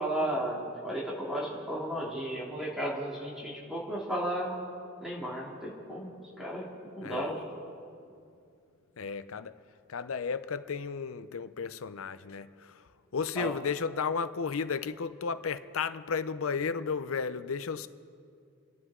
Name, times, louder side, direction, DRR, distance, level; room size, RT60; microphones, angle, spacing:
voice 1, 0.0-4.5 5.0-6.1 6.4-7.4 13.4-13.5, right 1 dB, ahead, 2.8 m, -34 dB
voice 2, 9.0-9.6 9.9-17.9, left 5 dB, 85° left, 0.6 m, -33 dB
29.0 x 11.0 x 3.7 m
head